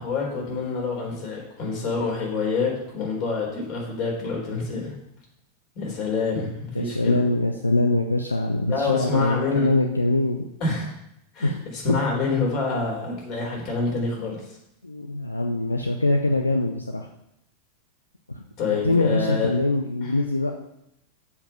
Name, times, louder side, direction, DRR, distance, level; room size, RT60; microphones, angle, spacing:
voice 1, 0.0-5.0 5.8-7.2 8.7-9.7 10.6-10.9 11.3-14.4 18.6-19.5 20.0-20.1, left 4 dB, 40° left, -2 dB, 3.7 m, -27 dB
voice 2, 6.7-10.4 11.4-11.6 14.8-17.1 18.3-18.4 18.7-20.5, left 2 dB, 85° left, 3 dB, 0.7 m, -23 dB
7.2 x 5.6 x 6.8 m, 0.80 s
figure-of-eight pair, 90°, 0 cm